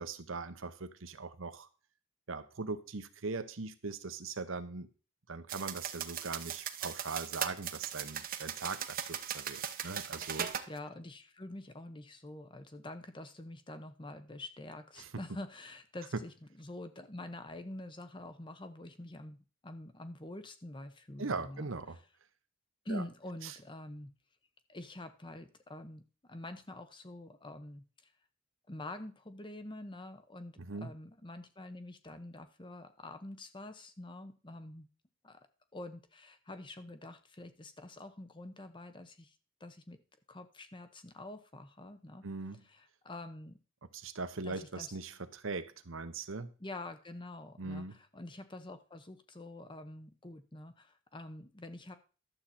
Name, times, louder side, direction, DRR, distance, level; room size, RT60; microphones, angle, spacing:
voice 1, 0.0-1.7 2.3-4.9 5.3-10.5 15.0-15.1 21.2-22.0 22.9-23.0 23.4-23.6 30.6-30.9 42.2-42.6 43.9-46.5 47.6-47.9, right 4 dB, 70° right, 11 dB, 0.9 m, -40 dB
sound 1, 5.5-10.7, right 9 dB, 45° right, 0.8 m, -39 dB
voice 2, 10.3-21.7 22.8-24.1 24.7-27.8 28.7-34.9 35.2-35.4 35.7-40.0 40.3-42.2 42.7-43.6 44.4-45.0 46.6-51.9, left 1 dB, 25° left, 9 dB, 0.9 m, -46 dB
12.0 x 7.6 x 4.3 m, 0.36 s
head